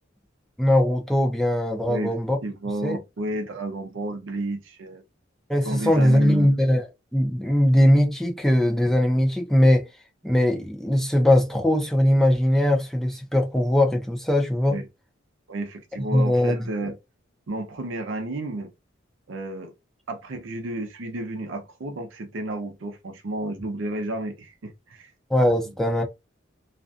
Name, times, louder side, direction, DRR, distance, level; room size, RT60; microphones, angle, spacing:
voice 1, 0.6-2.4 2.8-3.0 5.5-6.9 7.1-9.9 10.2-14.8 16.1-16.9 25.3-26.0, left 1 dB, ahead, 0.6 m, -20 dB
voice 2, 2.4-5.0 5.6-6.5 14.7-14.9 15.5-17.0 17.5-18.7 19.3-19.7 20.1-25.1, right 1 dB, 70° right, 0.6 m, -31 dB
2.5 x 2.3 x 2.5 m
head